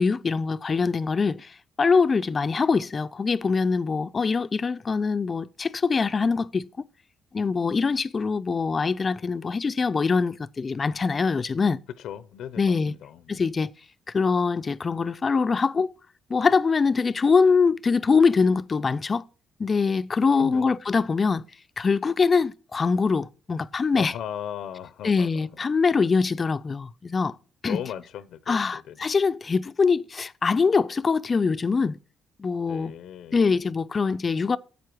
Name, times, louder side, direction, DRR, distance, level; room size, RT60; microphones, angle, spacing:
voice 1, 0.0-1.4 1.8-6.7 7.3-11.8 12.6-12.9 13.3-13.7 14.1-15.9 16.3-19.2 19.6-21.4 21.8-24.1 25.0-27.3 27.6-27.8 28.5-32.0 32.4-32.9 33.3-34.6, left 4 dB, 35° left, 0.5 m, -23 dB
voice 2, 12.0-13.5 20.4-20.7 23.9-25.3 27.7-29.0 32.7-33.4, left 9 dB, 85° left, 0.7 m, -37 dB
10.5 x 8.3 x 4.6 m
cardioid pair, 90°, 0 cm